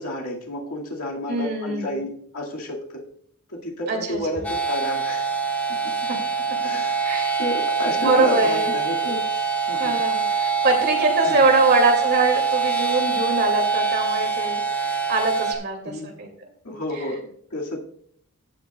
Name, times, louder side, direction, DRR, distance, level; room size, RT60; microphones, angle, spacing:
voice 1, 0.0-3.0 3.5-5.3 6.6-7.1 7.4-9.2 9.7-10.0 11.2-11.5 15.8-16.2 16.6-17.8, left 1 dB, 75° left, -2 dB, 2.1 m, -31 dB
voice 2, 1.3-2.0 3.9-4.2 6.1-6.2 7.0-7.3 8.0-8.7 9.8-14.6 14.9-16.3 17.0-17.1, right 3 dB, 50° right, 3 dB, 2.4 m, -23 dB
sound 1, 4.4-15.5, right 5 dB, 5° left, 1.1 m, -24 dB
15.5 x 7.7 x 2.3 m, 0.63 s
head